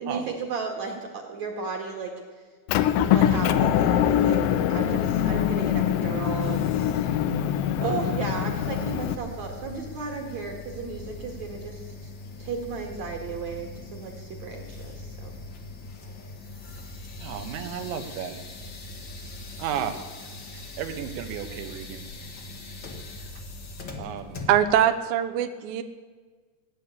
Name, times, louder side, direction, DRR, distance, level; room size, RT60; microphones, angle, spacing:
voice 1, 0.0-2.1 3.0-6.7 7.0-7.2 7.8-12.1 12.4-15.3, right 4 dB, 50° right, 2 dB, 2.4 m, -34 dB
Motor vehicle (road) / Engine, 2.7-9.1, left 10 dB, 85° left, 3.0 m, -23 dB
sound 1, 6.4-24.8, left 3 dB, 60° left, 1.2 m, -41 dB
voice 2, 17.2-18.4 19.6-20.0 20.5-22.0 24.0-24.4, right 9 dB, 90° right, 7 dB, 3.6 m, -33 dB
voice 3, 24.5-25.8, right 10 dB, 75° right, 7 dB, 2.3 m, -22 dB
17.0 x 10.0 x 8.3 m, 1.4 s
omnidirectional pair, 5.0 m